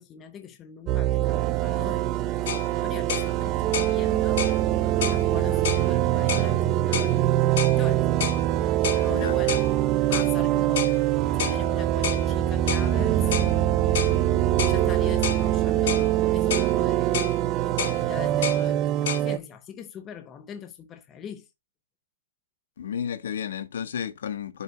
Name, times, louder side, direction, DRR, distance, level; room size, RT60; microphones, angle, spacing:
voice 1, 0.0-4.5 5.0-8.1 8.9-9.7 10.1-11.0 11.4-14.0 14.7-21.4, left 8 dB, 15° left, 0.7 m, -41 dB
sound 1, 0.9-19.4, right 13 dB, 20° right, 0.4 m, -23 dB
sound 2, 2.5-2.7 3.1-3.3 3.7-3.9 4.4-4.6 5.0-5.2 5.6-5.9 6.3-6.5 6.9-7.1 7.6-7.8 8.2-8.4 8.8-9.0 9.5-9.7 10.1-10.3 10.8-11.0 11.4-11.6 12.0-12.2 12.7-12.9 13.3-13.5 13.9-14.2 14.6-14.8 15.2-15.4 15.9-16.1 16.5-16.7 17.1-17.4 17.8-18.0 18.4-18.6 19.1-19.2, left 8 dB, 50° left, 1.7 m, -30 dB
voice 2, 9.0-9.4 22.8-24.6, left 8 dB, 65° left, 1.3 m, -32 dB
10.0 x 5.0 x 2.3 m
hypercardioid pair, 165°, 0 cm